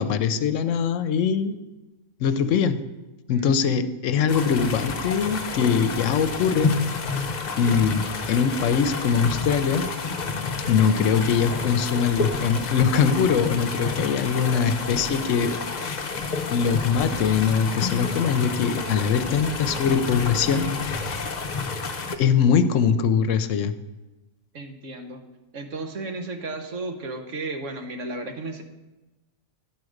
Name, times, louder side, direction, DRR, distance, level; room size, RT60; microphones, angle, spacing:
voice 1, 0.0-1.6 2.2-2.8 3.3-7.1 7.6-9.9 10.7-16.1 16.5-21.3 22.2-23.7, left 6 dB, 75° left, 11 dB, 0.9 m, -22 dB
sound 1, 4.3-22.2, left 4 dB, 45° left, 0.6 m, -30 dB
voice 2, 24.5-25.2 25.5-28.6, right 2 dB, 70° right, 5 dB, 1.3 m, -34 dB
11.0 x 4.8 x 6.4 m, 1.1 s
omnidirectional pair, 1.3 m